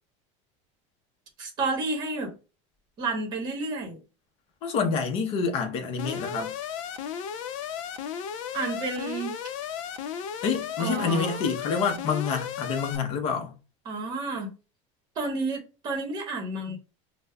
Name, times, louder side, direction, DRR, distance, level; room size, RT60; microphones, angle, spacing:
voice 1, 1.4-2.3 3.0-4.0 8.5-9.3 10.8-11.4 13.8-14.5 15.2-16.8, right 3 dB, 25° right, 1.0 m, -31 dB
voice 2, 4.6-6.5 10.4-13.5, left 5 dB, 35° left, 0.7 m, -27 dB
Alarm, 6.0-13.0, left 8 dB, 85° left, 0.5 m, -35 dB
5.2 x 2.1 x 2.2 m
cardioid pair, 175°, 16 cm